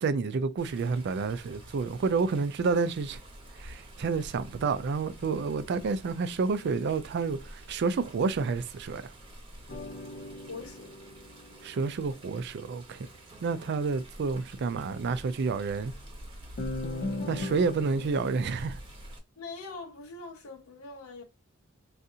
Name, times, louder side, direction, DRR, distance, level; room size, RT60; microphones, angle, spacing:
voice 1, 0.0-3.2 3.6-9.1 11.6-13.0 13.4-15.9 17.3-18.8, right 4 dB, 55° right, 0.4 m, -29 dB
Water, 0.6-19.2, right 1 dB, 25° right, 0.9 m, -48 dB
sound 1, 9.7-12.3 16.6-18.3, left 2 dB, 45° left, 0.4 m, -38 dB
voice 2, 10.3-11.0 19.4-21.2, left 3 dB, 75° left, 0.8 m, -43 dB
3.6 x 2.5 x 2.7 m
head